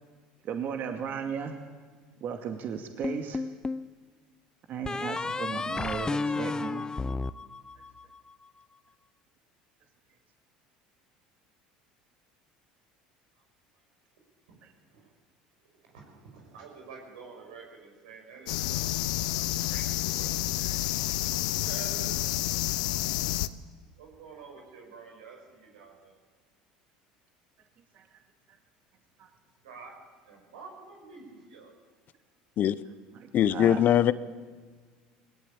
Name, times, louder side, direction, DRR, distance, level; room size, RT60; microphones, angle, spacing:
voice 1, 0.4-1.6 2.2-3.4 4.7-6.9 18.4-18.5 27.9-28.1 29.2-29.3 33.1-33.8, right 7 dB, 50° right, 2.3 m, -36 dB
sound 1, 3.0-3.9 4.9-8.2, left 3 dB, 20° left, 0.7 m, -32 dB
voice 2, 15.8-18.9 19.3-20.9 21.6-22.5 24.0-26.2 29.6-30.0 30.3-31.7, right 5 dB, 85° right, 6.1 m, -48 dB
sound 2, 18.5-23.5, left 16 dB, 80° left, 0.7 m, -29 dB
voice 3, 33.3-34.1, left 11 dB, 50° left, 0.8 m, -21 dB
19.0 x 19.0 x 8.8 m
hypercardioid pair, 85°, 4 cm